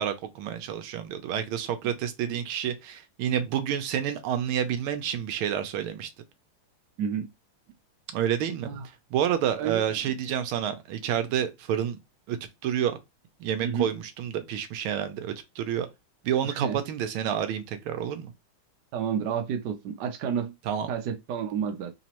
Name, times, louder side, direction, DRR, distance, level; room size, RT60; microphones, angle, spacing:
voice 1, 0.0-6.1 8.1-8.7 9.1-12.0 12.3-12.4 12.6-13.0 13.4-15.9 16.2-18.3 20.7-20.9, right 9 dB, 85° right, 1.5 m, -29 dB
voice 2, 7.0-7.3 8.7-8.9 9.6-10.0 13.6-13.9 16.4-16.8 18.9-20.5 20.9-21.9, right 7 dB, 65° right, 1.2 m, -30 dB
4.0 x 3.0 x 2.9 m
omnidirectional pair, 2.3 m